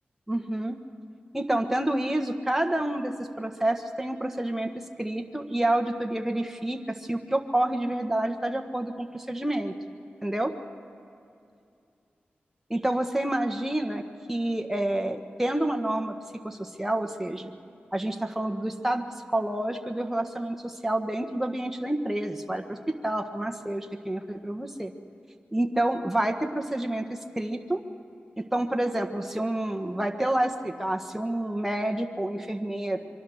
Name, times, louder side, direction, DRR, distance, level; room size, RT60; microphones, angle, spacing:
voice 1, 0.3-0.8 1.3-9.7 10.2-10.5 12.7-14.0 14.3-16.1 16.4-17.5 17.9-19.0 19.3-22.8 23.0-24.9 25.5-27.8 28.4-33.0, right 1 dB, 5° right, 4 dB, 1.4 m, -28 dB
24.5 x 23.5 x 6.5 m, 2.5 s
cardioid pair, 50°, 4 cm